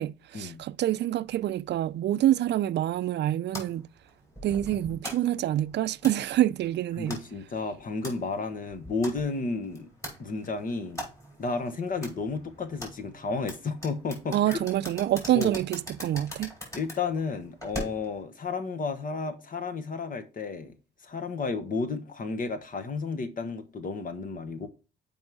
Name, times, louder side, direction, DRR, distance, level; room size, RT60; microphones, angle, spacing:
voice 1, 0.0-3.9 4.4-7.2 14.3-16.5, right 13 dB, 60° right, 0.4 m, -26 dB
sound 1, 3.5-18.2, equal, 15° left, 5.3 m, -43 dB
voice 2, 7.0-9.9 10.2-11.0 11.4-14.6 15.3-15.6 16.7-20.7 21.0-24.7, left 4 dB, 45° left, 1.1 m, -32 dB
7.3 x 5.4 x 4.7 m
cardioid pair, 90°, 20 cm